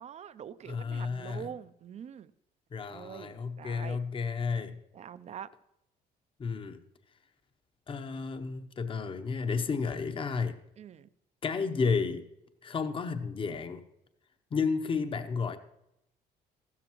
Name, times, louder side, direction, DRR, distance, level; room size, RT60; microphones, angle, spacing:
voice 1, 0.0-2.3 2.9-3.3 3.6-4.0 4.9-5.5 10.8-11.1, right 8 dB, 40° right, 0.5 m, -44 dB
voice 2, 0.7-1.5 2.7-4.8 6.4-6.8 7.9-10.6 11.4-12.2 12.6-13.8 14.5-15.6, left 5 dB, 30° left, 0.8 m, -32 dB
15.0 x 13.0 x 3.0 m
cardioid pair, 110°, 17 cm